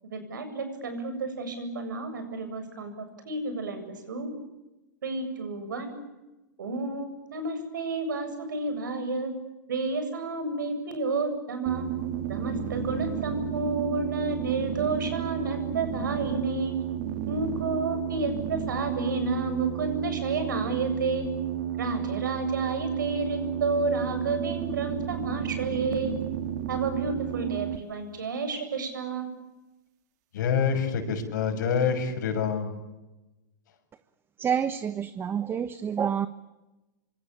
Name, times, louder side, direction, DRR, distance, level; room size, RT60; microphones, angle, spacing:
voice 1, 0.0-4.4 5.0-6.0 6.6-9.3 9.7-11.9 12.3-16.7 17.3-21.2 21.8-26.1 26.7-29.3, right 3 dB, 85° right, 7.8 m, -31 dB
sound 1, 11.7-27.8, right 10 dB, 60° right, 2.5 m, -32 dB
voice 2, 30.3-32.8, left 6 dB, 70° left, 6.8 m, -26 dB
voice 3, 34.4-36.3, right 8 dB, 20° right, 1.2 m, -28 dB
26.5 x 25.0 x 8.8 m
hypercardioid pair, 115°, 10 cm